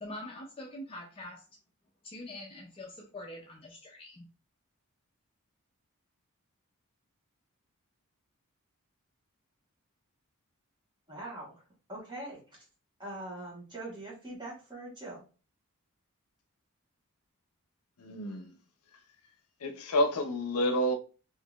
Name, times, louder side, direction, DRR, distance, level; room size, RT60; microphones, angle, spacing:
voice 1, 0.0-1.4 2.0-4.3, left 1 dB, 25° left, 0.4 m, -44 dB
voice 2, 11.1-11.6 11.9-12.6 13.0-15.2, right 1 dB, 20° right, 1.3 m, -42 dB
voice 3, 18.0-18.5 19.6-20.9, equal, 80° left, 0.6 m, -29 dB
3.6 x 2.8 x 2.4 m
head